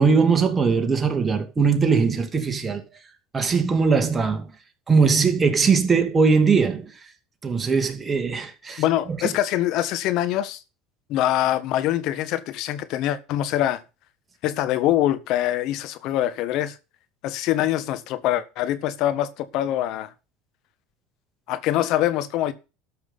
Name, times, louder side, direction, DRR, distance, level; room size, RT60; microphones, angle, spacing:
voice 1, 0.0-2.8 3.3-4.5 4.9-6.9 7.4-8.8, right 5 dB, 25° right, 2.7 m, -20 dB
voice 2, 8.8-10.6 11.1-13.8 14.4-16.8 17.2-20.1 21.5-22.5, left 13 dB, 60° left, 1.5 m, -24 dB
13.0 x 6.0 x 5.9 m
supercardioid pair, 90°, 0 cm